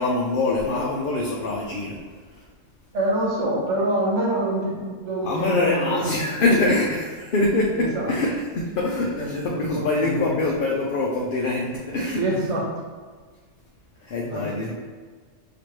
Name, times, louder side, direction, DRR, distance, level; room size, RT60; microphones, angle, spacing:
voice 1, 0.0-2.0 2.3-2.4 5.2-12.2 14.0-14.7, left 2 dB, 55° left, -3 dB, 0.6 m, -24 dB
voice 2, 2.9-6.2 7.7-8.1 9.2-10.3 12.1-12.6 14.3-14.5, right 1 dB, 70° right, -3 dB, 1.4 m, -26 dB
6.0 x 2.9 x 3.0 m, 1.5 s
omnidirectional pair, 1.3 m